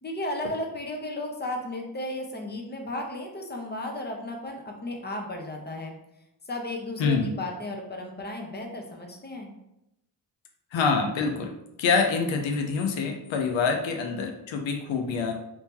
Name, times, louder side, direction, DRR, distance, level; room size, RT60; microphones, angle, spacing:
voice 1, 0.0-5.9 6.5-9.5, left 1 dB, 20° left, 1 dB, 0.8 m, -34 dB
voice 2, 7.0-7.3 10.7-15.3, left 5 dB, 85° left, 3 dB, 0.6 m, -26 dB
2.9 x 2.7 x 3.6 m, 0.84 s
cardioid pair, 65°, 44 cm